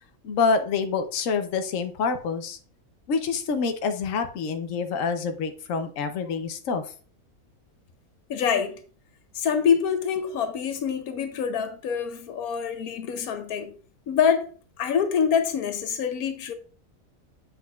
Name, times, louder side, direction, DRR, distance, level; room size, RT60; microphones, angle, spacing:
voice 1, 0.2-2.6 3.1-6.8, left 5 dB, 65° left, 1.1 m, -27 dB
voice 2, 8.3-8.8 9.3-13.7 14.1-14.5 14.8-16.5, left 7 dB, 90° left, 1.2 m, -25 dB
7.7 x 5.3 x 2.3 m
omnidirectional pair, 1.5 m